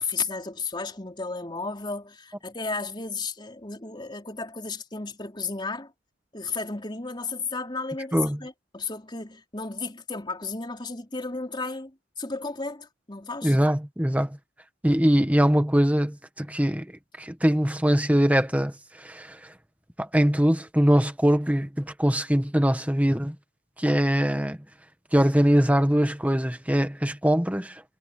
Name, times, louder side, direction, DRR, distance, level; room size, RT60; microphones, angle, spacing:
voice 1, 0.0-5.9 6.3-13.6, left 4 dB, 20° left, 4.1 m, -33 dB
voice 2, 13.4-14.4 14.8-16.9 17.2-19.5 20.0-23.3 23.8-24.6 25.1-27.8, equal, 5° right, 1.5 m, -22 dB
head